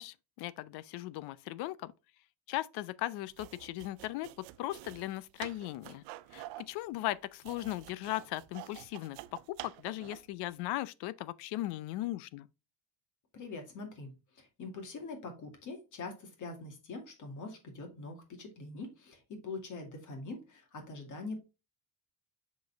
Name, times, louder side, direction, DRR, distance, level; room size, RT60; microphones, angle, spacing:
voice 1, 0.0-1.9 2.5-4.3 4.6-6.0 6.3-9.2 9.6-12.5, left 16 dB, 70° left, 0.6 m, -38 dB
sound 1, 3.3-10.3, right 17 dB, 90° right, 0.7 m, -49 dB
voice 2, 13.3-21.4, left 3 dB, 45° left, 2.2 m, -44 dB
7.3 x 4.1 x 3.4 m
cardioid pair, 120°, 40 cm